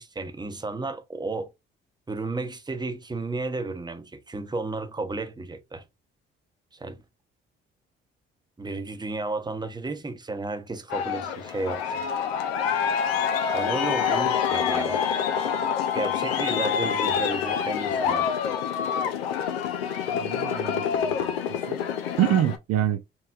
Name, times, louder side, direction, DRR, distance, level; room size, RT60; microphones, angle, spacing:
voice 1, 0.0-1.5 2.1-5.8 6.7-7.0 8.6-12.0 13.5-15.0 15.9-18.3, right 3 dB, 15° right, 0.9 m, -33 dB
Aircraft, 10.9-22.6, left 7 dB, 80° left, 0.7 m, -26 dB
voice 2, 20.1-21.3 21.7-21.8 22.2-23.0, right 12 dB, 55° right, 0.6 m, -26 dB
4.4 x 3.2 x 2.3 m
figure-of-eight pair, 45°, 30 cm